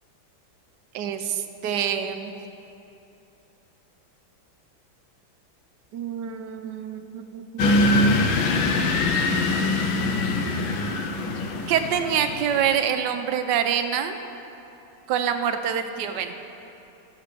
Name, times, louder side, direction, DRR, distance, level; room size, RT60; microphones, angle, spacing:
voice 1, 0.9-2.3 5.9-8.0 11.7-14.2 15.1-16.3, right 8 dB, 70° right, 7 dB, 1.2 m, -26 dB
sound 1, 7.6-12.8, left 2 dB, 85° left, 1.6 m, -23 dB
14.0 x 5.9 x 6.6 m, 2.9 s
omnidirectional pair, 2.2 m